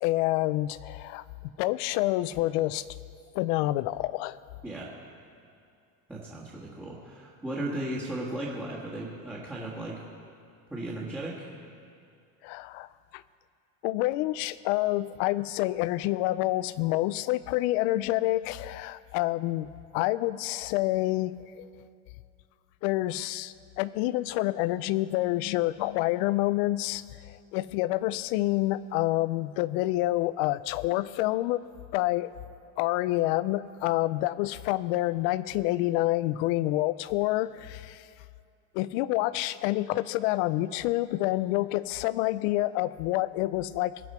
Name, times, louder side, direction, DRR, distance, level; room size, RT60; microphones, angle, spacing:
voice 1, 0.0-1.2 1.6-2.8 3.3-4.4 12.4-13.2 13.8-21.7 22.8-31.6 31.9-32.3 32.8-38.1 38.7-44.0, left 17 dB, 85° left, 17 dB, 0.5 m, -28 dB
voice 2, 6.1-10.0 10.7-11.4, right 1 dB, 5° right, -8 dB, 1.4 m, -36 dB
21.5 x 8.0 x 4.3 m, 2.5 s
cardioid pair, 165°, 38 cm